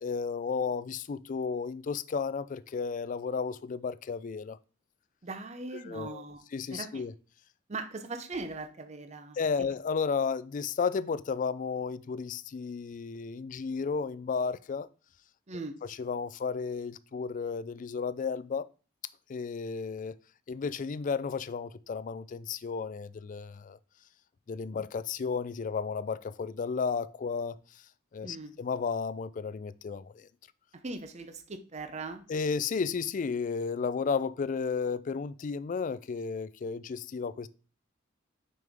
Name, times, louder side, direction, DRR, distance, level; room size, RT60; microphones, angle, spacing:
voice 1, 0.0-4.6 5.9-6.2 6.5-7.1 9.4-14.9 15.8-18.7 19.3-20.2 20.5-23.8 24.5-27.8 28.1-30.3 32.3-37.5, left 5 dB, 40° left, 0.3 m, -33 dB
voice 2, 5.2-6.4 6.7-7.0 7.7-9.4 15.5-15.7 28.2-28.5 30.7-32.2, right 3 dB, 35° right, 0.6 m, -40 dB
6.3 x 5.4 x 3.5 m
head